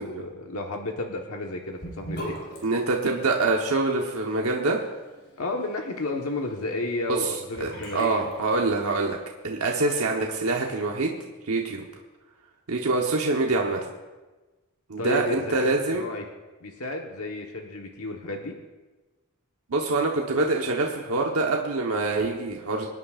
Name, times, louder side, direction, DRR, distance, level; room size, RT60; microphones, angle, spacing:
voice 1, 0.0-2.4 5.4-8.3 15.0-16.2 16.6-18.6, left 2 dB, 80° left, 1 dB, 1.2 m, -32 dB
Sink (filling or washing) / Bathtub (filling or washing), 1.8-9.1, equal, 55° left, 4.1 m, -43 dB
voice 2, 2.6-4.8 7.1-7.3 7.6-9.2 9.4-11.1 11.4-11.8 12.7-13.8 14.9-16.0 19.7-22.9, right 3 dB, 75° right, 0 dB, 1.1 m, -25 dB
25.5 x 9.6 x 2.5 m, 1.2 s
head